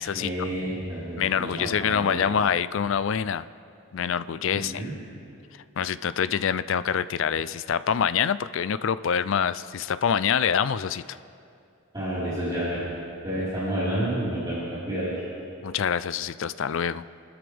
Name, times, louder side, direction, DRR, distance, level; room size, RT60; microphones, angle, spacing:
voice 1, 0.1-2.4 4.5-4.9 11.9-12.9 13.2-15.2, right 1 dB, 20° right, -12 dB, 4.4 m, -30 dB
voice 2, 1.2-3.4 3.9-4.8 5.8-11.2 15.6-17.0, left 7 dB, 65° left, 15 dB, 0.4 m, -26 dB
29.0 x 13.0 x 3.5 m, 2.6 s
head